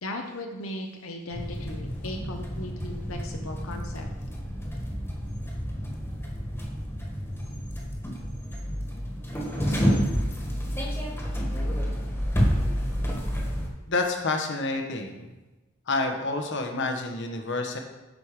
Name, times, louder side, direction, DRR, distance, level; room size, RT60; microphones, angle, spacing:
voice 1, 0.0-4.1, left 1 dB, 85° left, 3 dB, 0.9 m, -37 dB
sound 1, 1.3-13.7, equal, 10° left, 1.7 m, -29 dB
voice 2, 13.9-15.4 15.9-17.8, left 3 dB, 60° left, 4 dB, 1.1 m, -28 dB
10.5 x 5.2 x 4.8 m, 1.1 s
head